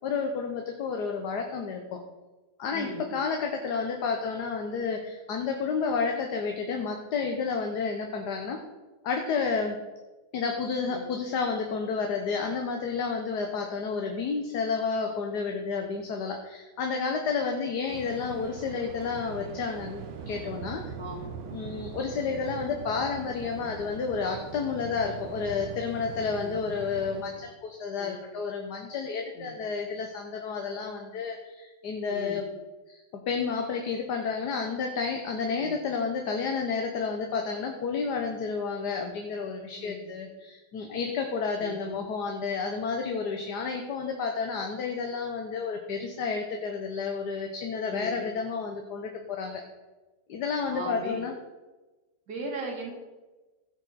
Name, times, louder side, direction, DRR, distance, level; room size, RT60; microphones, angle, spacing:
voice 1, 0.0-2.0 2.6-8.6 9.0-9.8 10.3-20.9 21.5-32.5 32.9-49.6 50.3-51.3, left 5 dB, 70° left, 3 dB, 1.6 m, -31 dB
voice 2, 2.7-3.1 10.9-11.1 21.0-21.2 26.4-26.6 28.0-28.2 29.3-29.5 32.1-32.4 35.6-35.8 39.8-40.1 41.6-41.8 47.9-48.3 50.7-51.2 52.3-52.9, right 1 dB, 70° right, 0 dB, 2.7 m, -38 dB
Waves surf, 17.9-27.5, right 7 dB, 90° right, 1.5 m, -41 dB
16.5 x 6.6 x 4.2 m, 1.2 s
omnidirectional pair, 1.8 m